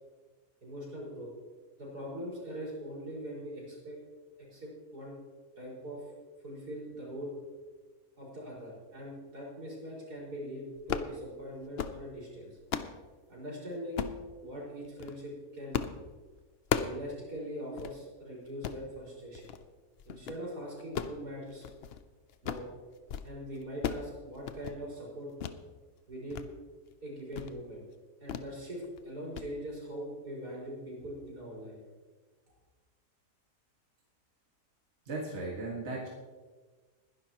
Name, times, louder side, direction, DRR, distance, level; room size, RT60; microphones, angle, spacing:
voice 1, 0.6-1.3 1.8-4.0 4.4-5.2 5.6-6.0 6.4-7.3 8.2-12.5 13.3-14.0 14.4-15.8 16.7-19.5 20.1-21.7 22.4-22.6 23.2-25.3 26.1-26.4 27.0-27.8 28.2-31.8, equal, 75° right, -5 dB, 5.9 m, -42 dB
sound 1, 10.8-11.1 11.6-12.0 12.4-13.0 14.0-14.2 14.8-15.2 15.7-16.0 16.3-17.0 17.4-17.5 17.8-17.9 18.5-18.8 19.3-19.6 20.0-20.4 20.8-22.0 22.3-22.7 23.0-23.3 23.5-24.1 24.4-24.8 25.4-25.6 26.0-26.5 26.8-26.9 27.3-27.6 28.3-28.5 28.8-29.0 29.3-29.5, left 8 dB, 65° left, 0.6 m, -36 dB
voice 2, 35.1-36.1, right 2 dB, 45° right, -4 dB, 2.2 m, -36 dB
21.0 x 11.0 x 3.0 m, 1.4 s
omnidirectional pair, 1.7 m